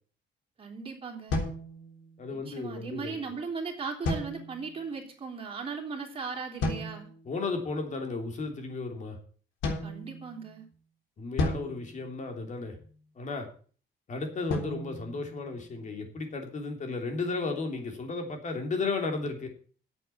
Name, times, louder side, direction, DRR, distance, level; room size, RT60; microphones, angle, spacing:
voice 1, 0.6-1.4 2.5-7.1 9.8-10.6, right 5 dB, 30° right, 1 dB, 3.6 m, -37 dB
sound 1, 1.3-2.4 4.0-4.9 6.6-7.3 9.6-10.7 11.4-12.8 14.5-16.0, left 2 dB, 80° left, 3.5 m, -34 dB
voice 2, 2.2-3.2 7.2-9.2 11.2-12.8 13.1-13.5 14.1-19.5, left 3 dB, 40° left, 4 dB, 3.2 m, -34 dB
9.1 x 8.3 x 8.4 m, 0.43 s
cardioid pair, 145°, 19 cm